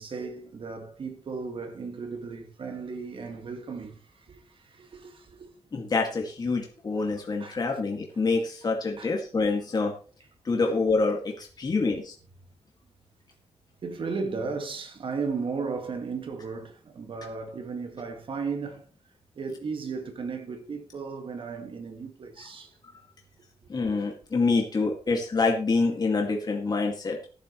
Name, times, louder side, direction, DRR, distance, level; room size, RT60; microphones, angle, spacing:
voice 1, 0.0-5.5 7.4-7.6 9.0-9.1 13.8-18.9 19.4-22.7 23.6-23.7 25.1-25.2, right 4 dB, 55° right, 2.0 m, -35 dB
voice 2, 5.7-9.9 10.5-12.1 23.7-27.3, left 3 dB, 40° left, 2.2 m, -26 dB
15.5 x 11.0 x 3.2 m
wide cardioid pair, 135°, 11 cm